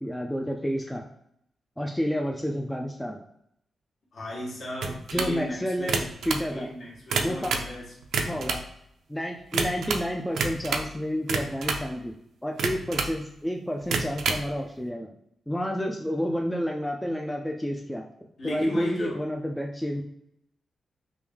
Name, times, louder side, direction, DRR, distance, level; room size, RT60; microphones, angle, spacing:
voice 1, 0.0-1.0 1.8-3.2 5.1-6.7 7.2-7.5 8.2-8.6 9.1-12.1 12.4-15.1 15.5-18.0 18.4-20.0, equal, 5° left, 0 dB, 0.3 m, -30 dB
voice 2, 4.1-6.1 6.5-7.9 18.4-19.2, left 1 dB, 55° left, -4 dB, 1.3 m, -35 dB
sound 1, 4.8-5.4 5.8-6.5 6.9-7.7 8.0-8.7 9.5-10.1 10.3-10.9 11.3-11.9 12.6-13.2 13.8-14.5, right 4 dB, 80° right, 0.4 m, -28 dB
3.3 x 2.6 x 3.5 m, 0.76 s
wide cardioid pair, 130°, 0 cm